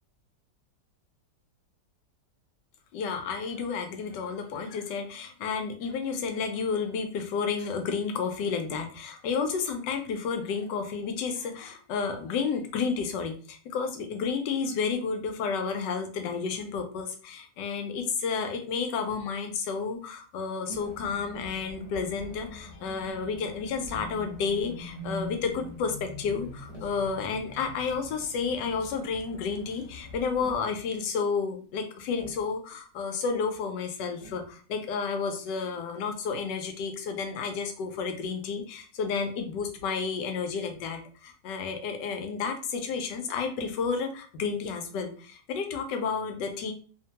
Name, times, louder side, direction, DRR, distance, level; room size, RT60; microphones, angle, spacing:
voice 1, 2.9-46.7, left 5 dB, 80° left, 5 dB, 1.2 m, -31 dB
Tap, 19.0-19.4 20.7-21.0 22.1-22.6 23.7-24.4 25.4-25.8 26.5-27.0 28.2-28.3 28.5-29.1 30.4-30.8 32.1-32.6 34.2-34.5, right 2 dB, 50° left, 0.4 m, -48 dB
sound 1, 20.8-30.6, left 1 dB, 35° left, 1.3 m, -44 dB
3.1 x 2.1 x 2.8 m, 0.41 s
omnidirectional pair, 1.9 m